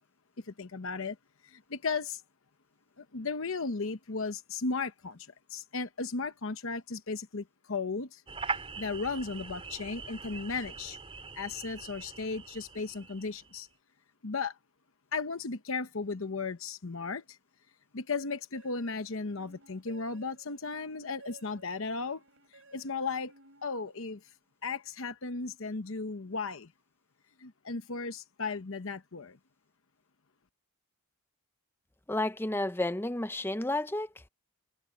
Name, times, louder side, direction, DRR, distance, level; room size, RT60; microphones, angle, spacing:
voice 1, 0.4-1.2 1.4-2.2 3.0-8.2 8.8-11.0 11.3-13.7 14.2-14.6 15.1-17.4 17.9-22.2 22.5-23.3 23.6-24.2 24.6-26.7 27.4-29.4, left 4 dB, 60° left, 0.9 m, -35 dB
sound 1, 8.3-13.6, right 4 dB, 25° right, 3.4 m, -41 dB
sound 2, 18.5-24.4, right 3 dB, 60° right, 6.8 m, -57 dB
voice 2, 32.1-34.1, left 1 dB, 10° left, 0.6 m, -31 dB
head